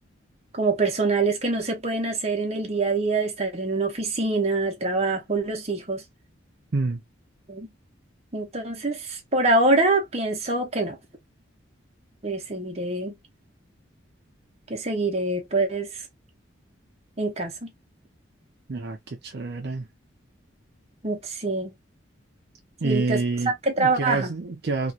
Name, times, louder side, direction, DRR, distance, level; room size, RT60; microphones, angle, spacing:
voice 1, 0.5-6.0 7.5-7.7 8.3-11.0 12.2-13.2 14.7-16.0 17.2-17.7 21.0-21.7 22.8-24.3, right 3 dB, 30° right, 0.9 m, -25 dB
voice 2, 18.7-19.9 22.8-24.9, right 3 dB, 55° right, 0.5 m, -28 dB
3.1 x 2.4 x 2.7 m
head